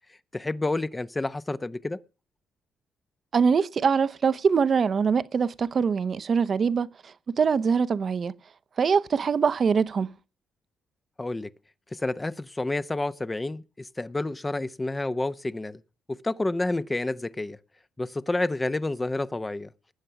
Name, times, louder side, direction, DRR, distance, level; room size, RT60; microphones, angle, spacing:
voice 1, 0.1-2.0 11.2-11.5 11.9-15.8 16.1-17.6 18.0-19.7, left 2 dB, 20° left, 0.8 m, -29 dB
voice 2, 3.3-8.3 8.8-10.1, right 6 dB, 45° right, 0.8 m, -23 dB
19.5 x 7.6 x 5.9 m
cardioid pair, 90°, 0 cm